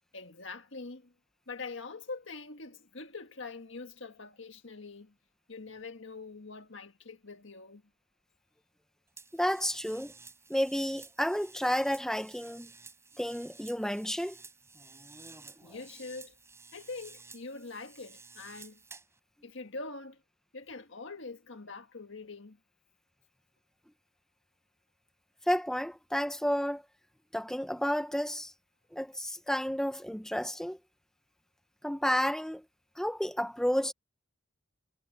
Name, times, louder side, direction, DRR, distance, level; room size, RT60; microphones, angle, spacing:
voice 1, 0.1-1.1 1.5-5.2 5.5-7.8 15.6-16.4 16.7-18.8 19.4-20.2 20.5-22.6, left 3 dB, 60° left, 1.7 m, -44 dB
sound 1, 9.2-19.2, right 4 dB, 15° right, 4.9 m, -53 dB
voice 2, 9.3-10.1 10.5-12.7 13.2-14.3 25.5-26.8 27.3-28.5 28.9-30.8 31.8-32.6 33.0-33.9, equal, 5° left, 0.9 m, -31 dB
head